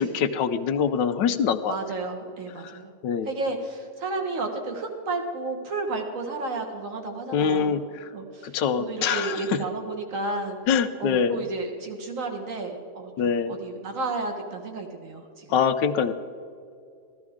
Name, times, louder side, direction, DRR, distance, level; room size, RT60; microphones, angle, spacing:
voice 1, 0.0-1.8 3.0-3.3 7.3-7.8 8.5-9.4 10.7-11.4 13.2-13.5 15.5-16.1, left 7 dB, 85° left, 10 dB, 1.3 m, -24 dB
voice 2, 1.7-2.9 3.2-7.8 8.1-10.6 11.0-15.6, right 3 dB, 50° right, 3 dB, 1.7 m, -32 dB
14.0 x 14.0 x 3.6 m, 2.4 s
omnidirectional pair, 1.9 m